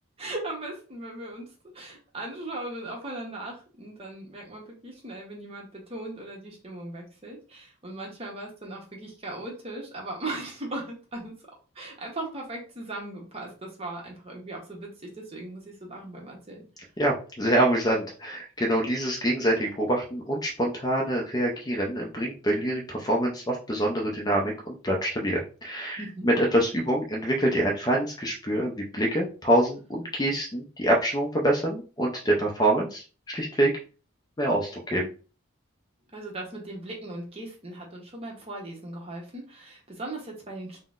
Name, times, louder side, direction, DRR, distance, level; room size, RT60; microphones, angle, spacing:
voice 1, 0.2-11.3 11.7-16.7 26.0-26.3 36.1-40.8, right 2 dB, 30° right, -1 dB, 0.8 m, -38 dB
voice 2, 17.0-33.7 34.4-35.1, right 1 dB, 20° left, 0 dB, 0.4 m, -26 dB
3.7 x 2.0 x 2.4 m, 0.36 s
head